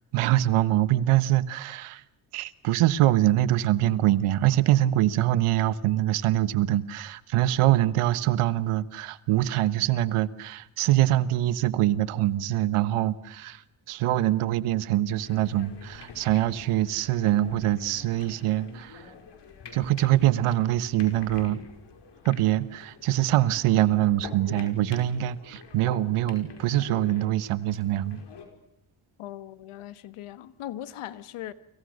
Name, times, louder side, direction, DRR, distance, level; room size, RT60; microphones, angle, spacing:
voice 1, 0.1-2.0 2.3-13.6 13.9-19.0 19.7-21.6 22.2-28.2, right 14 dB, 85° right, 1.4 m, -24 dB
sound 1, 15.2-28.5, left 5 dB, 55° left, 5.5 m, -46 dB
voice 2, 29.2-31.5, left 12 dB, 80° left, 1.6 m, -39 dB
29.5 x 25.0 x 6.6 m
cardioid pair, 90°, 49 cm